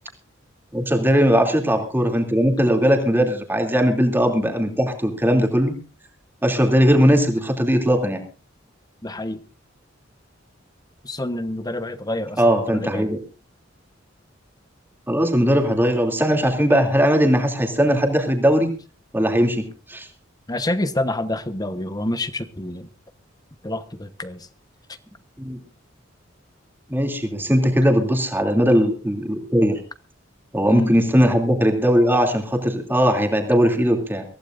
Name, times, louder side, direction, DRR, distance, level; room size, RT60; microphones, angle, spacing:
voice 1, 0.7-5.7 6.4-8.2 12.4-13.2 15.1-18.7 19.1-20.1 25.4-25.6 26.9-29.8 30.5-34.2, equal, 10° right, 2.8 m, -19 dB
voice 2, 9.0-9.4 11.0-12.4 12.7-13.1 20.5-22.9 23.6-24.5 30.7-30.9, left 1 dB, 20° left, 1.1 m, -27 dB
23.5 x 16.0 x 2.6 m
head